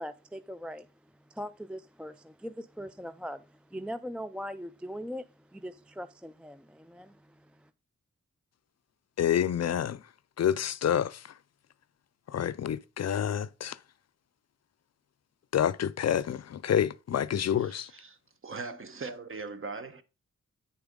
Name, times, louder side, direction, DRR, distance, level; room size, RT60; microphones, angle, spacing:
voice 1, 0.0-7.7, equal, 5° right, 0.3 m, -41 dB
voice 2, 9.2-10.0 10.4-11.3 12.3-13.8 15.5-17.9, left 9 dB, 60° left, 0.4 m, -28 dB
voice 3, 17.6-20.0, right 4 dB, 45° right, 1.0 m, -40 dB
8.9 x 6.9 x 3.7 m
wide cardioid pair, 100°, 29 cm